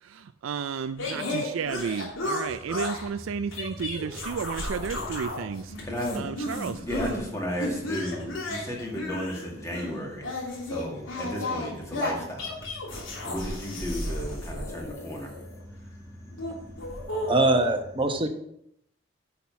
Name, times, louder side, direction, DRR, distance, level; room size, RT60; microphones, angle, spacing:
voice 1, 0.0-5.7 6.2-6.9, right 6 dB, 80° right, 11 dB, 0.4 m, -32 dB
sound 1, 1.0-3.1 3.5-5.4 5.7-7.2 7.6-15.6 16.3-17.7, left 1 dB, 80° left, 3.1 m, -33 dB
voice 2, 5.4-17.3 18.1-18.2, equal, 15° left, -1 dB, 2.2 m, -36 dB
voice 3, 17.3-18.3, right 2 dB, 25° right, 5 dB, 1.0 m, -22 dB
10.5 x 5.8 x 5.8 m, 0.75 s
head